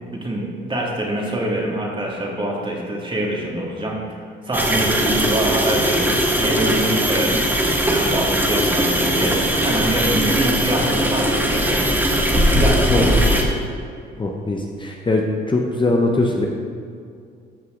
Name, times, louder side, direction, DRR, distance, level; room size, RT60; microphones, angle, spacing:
voice 1, 0.1-7.4 7.9-11.8 12.5-13.2, right 1 dB, 25° right, -2 dB, 2.2 m, -25 dB
sound 1, 4.5-13.4, equal, 10° right, 1.4 m, -19 dB
voice 2, 14.2-15.2 15.5-16.5, left 2 dB, 25° left, 0 dB, 0.9 m, -21 dB
14.0 x 5.5 x 3.8 m, 2.3 s
cardioid pair, 90°, 20 cm